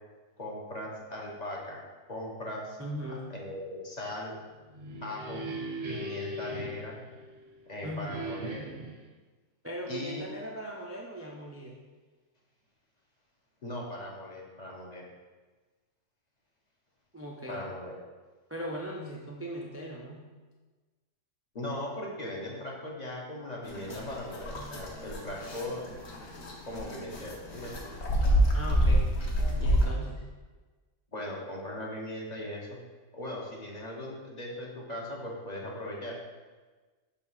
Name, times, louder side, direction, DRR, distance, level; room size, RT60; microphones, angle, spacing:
voice 1, 0.4-1.8 2.1-2.8 3.3-4.4 5.0-5.4 5.9-7.0 7.7-8.7 9.9-10.3 13.6-15.1 17.5-18.0 21.5-25.9 26.7-27.9 31.1-32.8 33.1-36.2, left 1 dB, 35° left, -2 dB, 0.9 m, -39 dB
voice 2, 2.8-3.3 7.8-8.3 9.6-11.8 17.1-17.6 18.5-20.2 28.5-29.1 29.6-30.2, equal, 20° right, -3 dB, 0.3 m, -39 dB
sound 1, 4.5-7.6 8.1-9.0, right 1 dB, 45° right, 0.8 m, -39 dB
sound 2, 23.6-29.9, equal, 60° left, 1.2 m, -28 dB
7.0 x 2.5 x 5.5 m, 1.3 s
omnidirectional pair, 1.3 m